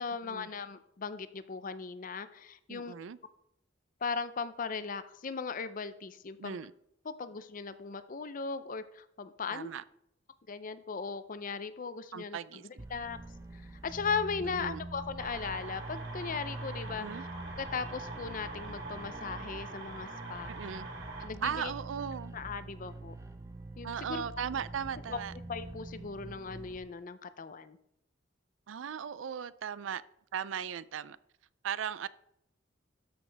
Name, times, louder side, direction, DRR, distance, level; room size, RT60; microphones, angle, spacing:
voice 1, 0.0-2.9 4.0-6.6 7.1-9.7 10.5-12.4 12.9-13.2 13.5-17.2 17.6-20.5 21.2-21.7 22.3-23.1 23.8-24.2 25.1-25.2 25.5-27.8, left 5 dB, 45° left, 13 dB, 0.5 m, -38 dB
voice 2, 2.7-3.2 6.4-6.7 9.5-9.8 12.1-12.8 14.4-14.9 17.0-17.2 20.5-20.9 21.4-22.3 23.8-25.3 28.7-30.0 30.3-31.2 31.6-32.1, right 7 dB, 85° right, 17 dB, 0.4 m, -37 dB
sound 1, 12.8-26.8, right 2 dB, 15° right, 0.7 m, -45 dB
sound 2, 15.2-21.3, right 3 dB, 65° right, 2.0 m, -44 dB
13.0 x 6.4 x 3.4 m, 0.78 s
head